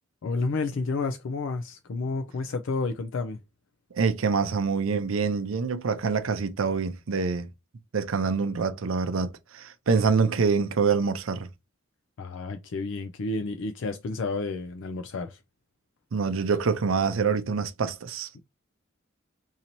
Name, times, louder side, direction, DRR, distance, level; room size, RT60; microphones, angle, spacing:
voice 1, 0.2-3.4 12.2-15.4, left 3 dB, 60° left, 0.4 m, -30 dB
voice 2, 3.9-7.5 7.9-11.5 16.1-18.3, right 5 dB, 70° right, 0.5 m, -26 dB
4.0 x 2.7 x 2.9 m
head